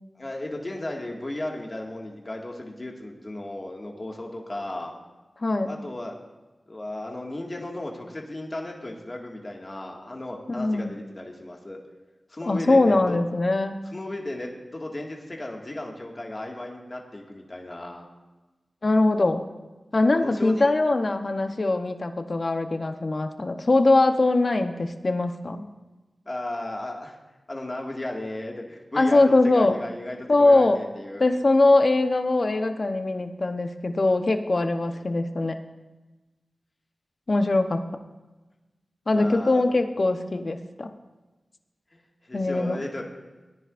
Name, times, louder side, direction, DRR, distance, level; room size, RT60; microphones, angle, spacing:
voice 1, 0.2-4.9 5.7-6.1 6.7-11.8 12.3-13.2 13.9-18.1 20.2-20.7 26.3-27.2 27.5-31.3 34.9-35.0 39.1-39.7 41.9-43.0, left 1 dB, 35° left, 0 dB, 1.9 m, -35 dB
voice 2, 5.4-5.7 10.5-10.9 12.5-13.8 18.8-19.4 19.9-25.6 29.0-29.8 30.3-30.8 31.2-35.6 37.3-37.8 39.1-40.9 42.3-42.8, left 2 dB, 55° left, 7 dB, 0.9 m, -22 dB
18.5 x 10.0 x 2.6 m, 1.2 s
cardioid pair, 45°, 0 cm